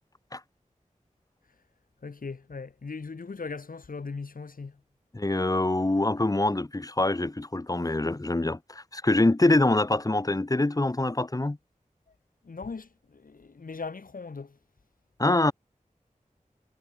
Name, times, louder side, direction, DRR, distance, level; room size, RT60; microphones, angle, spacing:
voice 1, 2.0-4.8 12.4-14.6, left 4 dB, 80° left, 1.6 m, -39 dB
voice 2, 5.1-11.6 15.2-15.5, left 2 dB, 25° left, 1.0 m, -25 dB
wide cardioid pair, 65°, 14 cm